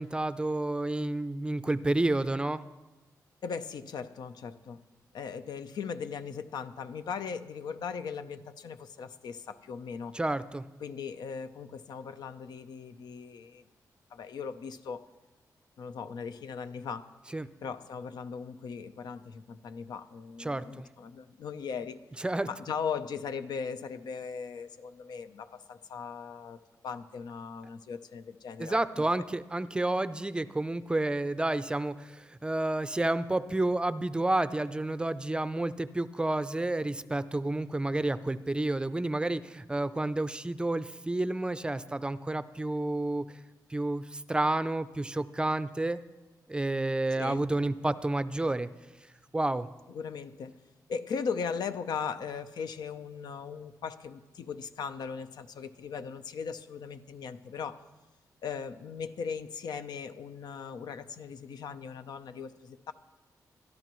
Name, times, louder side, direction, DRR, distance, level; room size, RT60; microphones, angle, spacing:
voice 1, 0.0-2.6 10.1-10.6 17.3-17.5 20.4-20.9 22.2-22.5 28.6-43.2 43.7-46.0 46.5-48.7 49.3-49.7, right 2 dB, 15° right, 14 dB, 0.4 m, -30 dB
voice 2, 3.4-4.8 5.1-10.2 10.8-13.6 14.1-15.0 15.8-17.1 17.6-22.0 22.5-29.0 47.1-47.5 49.9-50.5 50.9-57.8 58.4-62.9, left 6 dB, 90° left, 10 dB, 0.7 m, -38 dB
22.5 x 13.0 x 3.1 m, 1.1 s
wide cardioid pair, 120°, 7 cm